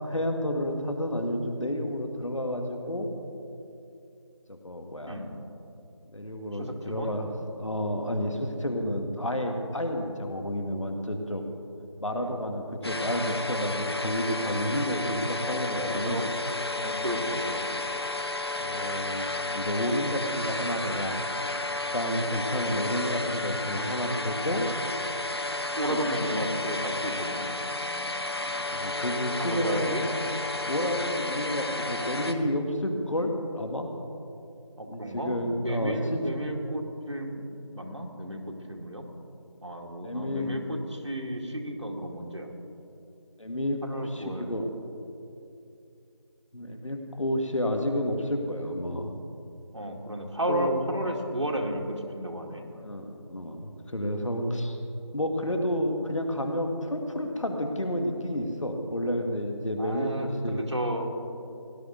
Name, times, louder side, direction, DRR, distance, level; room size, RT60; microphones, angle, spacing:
voice 1, 0.0-3.1 4.5-5.2 6.1-7.3 7.5-11.5 12.0-16.2 18.6-19.3 19.5-21.2 21.7-24.7 25.9-26.3 28.7-30.1 30.7-33.9 34.9-36.2 40.0-40.5 43.4-44.8 46.5-49.1 50.5-50.9 52.5-54.8 55.1-60.6, equal, 85° left, 4 dB, 1.9 m, -30 dB
voice 2, 6.5-7.1 12.1-12.4 15.8-16.3 16.8-17.8 25.7-27.5 29.4-30.1 34.8-39.0 39.6-42.5 43.8-44.5 49.7-52.6 59.8-61.0, right 1 dB, 65° right, 1 dB, 2.0 m, -33 dB
sound 1, 12.8-32.3, left 2 dB, 55° left, 1.0 m, -32 dB
18.0 x 11.0 x 3.9 m, 2.7 s
figure-of-eight pair, 180°, 16 cm